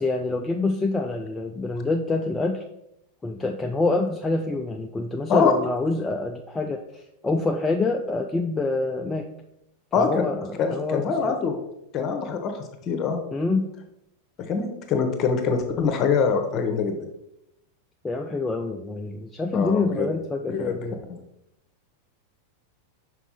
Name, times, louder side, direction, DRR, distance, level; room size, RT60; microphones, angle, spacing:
voice 1, 0.0-2.6 3.2-9.3 9.9-11.3 13.3-13.7 18.0-20.9, left 3 dB, 10° left, 3 dB, 0.4 m, -26 dB
voice 2, 9.9-10.3 10.6-11.6 11.9-13.2 14.4-17.0 19.5-20.1 20.5-20.8 21.1-21.2, left 5 dB, 35° left, 6 dB, 0.9 m, -24 dB
5.7 x 4.4 x 4.1 m, 0.85 s
figure-of-eight pair, 90°, 0 cm